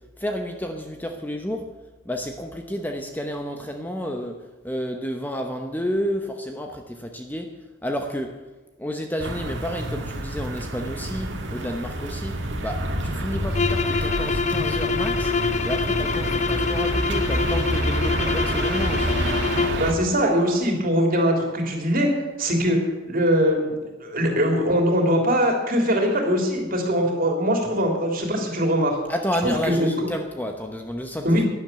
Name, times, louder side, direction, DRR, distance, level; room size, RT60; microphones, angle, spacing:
voice 1, 0.0-1.8 2.0-7.6 7.8-8.5 8.8-15.3 15.6-19.2 29.1-31.5, equal, 10° left, 4 dB, 0.9 m, -31 dB
sound 1, 9.2-19.9, right 1 dB, 60° right, 1.9 m, -28 dB
sound 2, 13.5-19.9, left 4 dB, 35° left, 0.6 m, -25 dB
voice 2, 19.8-22.1 22.4-22.8 23.1-28.9 29.4-29.9 31.2-31.5, equal, 45° right, 2 dB, 3.2 m, -22 dB
12.0 x 10.5 x 8.2 m, 1.2 s
head